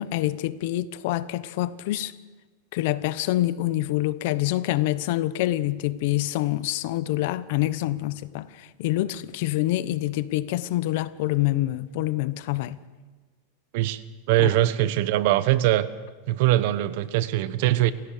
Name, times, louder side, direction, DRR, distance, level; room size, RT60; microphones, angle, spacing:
voice 1, 0.0-2.1 2.7-12.8 14.4-14.5, left 16 dB, 60° left, 0.9 m, -26 dB
voice 2, 14.3-15.9 16.3-17.9, right 14 dB, 60° right, 1.1 m, -22 dB
28.5 x 16.5 x 6.7 m
supercardioid pair, 150°, 0 cm